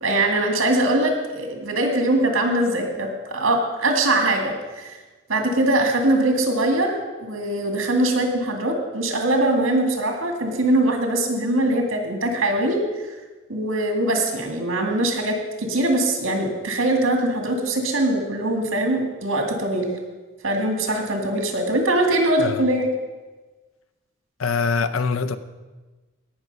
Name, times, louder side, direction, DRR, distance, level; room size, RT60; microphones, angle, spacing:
voice 1, 0.0-5.0 5.3-12.8 13.5-19.9 20.4-22.8, right 1 dB, 70° right, 3 dB, 2.2 m, -22 dB
voice 2, 24.4-25.4, left 5 dB, 85° left, 12 dB, 0.7 m, -23 dB
17.5 x 6.1 x 5.5 m, 1.3 s
head